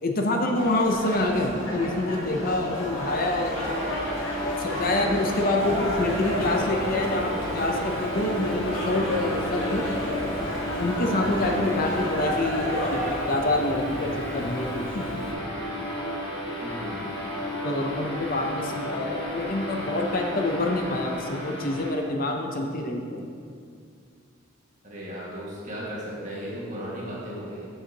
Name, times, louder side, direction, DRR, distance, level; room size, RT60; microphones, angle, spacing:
voice 1, 0.0-3.7 4.6-9.8 10.8-15.3 17.6-23.3, left 2 dB, 45° left, 2 dB, 0.7 m, -27 dB
sound 1, 0.5-13.2, left 1 dB, 85° left, 2.1 m, -32 dB
sound 2, 3.5-21.9, equal, 25° left, 1.5 m, -33 dB
Bird, 5.6-15.3, right 1 dB, 65° right, 1.2 m, -40 dB
voice 2, 16.6-17.1 24.8-27.7, equal, 35° right, -6 dB, 1.9 m, -36 dB
14.0 x 5.6 x 2.9 m, 2.3 s
head